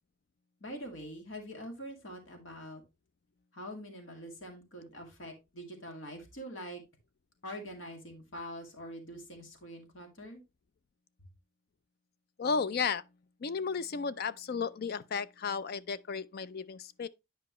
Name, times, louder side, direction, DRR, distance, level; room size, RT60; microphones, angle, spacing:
voice 1, 0.6-2.8 3.5-6.8 7.4-10.4, equal, 65° left, 2.2 m, -44 dB
voice 2, 12.4-13.0 13.4-17.1, left 5 dB, 50° left, 0.4 m, -33 dB
9.7 x 5.1 x 3.0 m
head